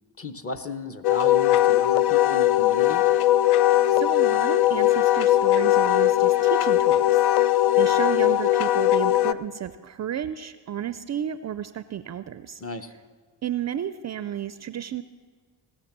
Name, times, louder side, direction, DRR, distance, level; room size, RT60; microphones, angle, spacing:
voice 1, 0.2-3.0 12.6-12.9, left 3 dB, 30° left, 6 dB, 1.1 m, -34 dB
Wind instrument woodwind instrument, 1.0-9.3, left 13 dB, 55° left, 0.5 m, -20 dB
voice 2, 3.6-12.6 13.4-15.0, right 10 dB, 35° right, 13 dB, 0.5 m, -33 dB
18.5 x 6.8 x 6.1 m, 1.5 s
supercardioid pair, 60°, 48 cm